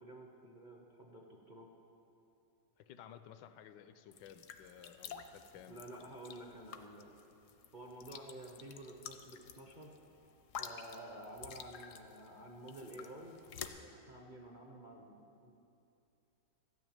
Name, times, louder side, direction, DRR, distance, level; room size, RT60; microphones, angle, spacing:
voice 1, 0.0-1.7 5.7-7.1 7.7-9.9 10.6-13.4 13.7-15.2 15.4-15.5, right 1 dB, 40° right, 0 dB, 0.7 m, -51 dB
voice 2, 2.8-5.8, left 9 dB, 80° left, 10 dB, 1.2 m, -55 dB
sound 1, 4.1-13.7, left 7 dB, 60° left, 0.8 m, -50 dB
13.5 x 6.1 x 8.9 m, 2.7 s
omnidirectional pair, 2.0 m